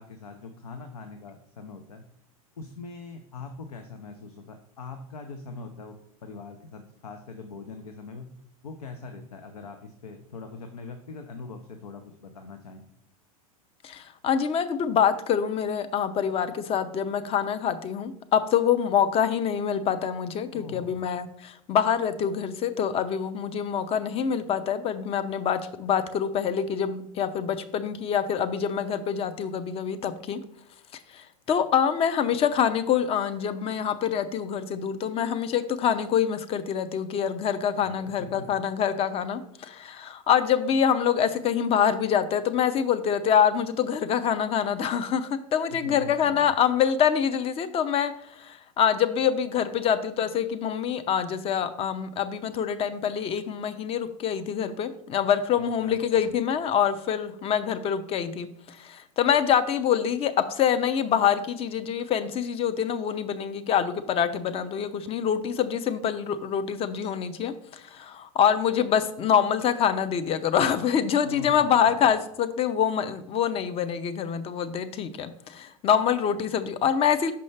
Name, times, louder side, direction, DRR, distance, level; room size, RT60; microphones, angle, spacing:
voice 1, 0.0-2.0 2.6-6.0 6.2-8.3 8.6-12.8 20.5-21.0 37.8-38.5 45.7-46.5 55.6-56.3 71.2-72.1, left 4 dB, 90° left, 6 dB, 0.7 m, -42 dB
voice 2, 13.8-30.4 31.1-77.3, left 8 dB, 30° left, 11 dB, 0.6 m, -25 dB
5.6 x 5.3 x 3.3 m, 0.74 s
hypercardioid pair, 100°, 19 cm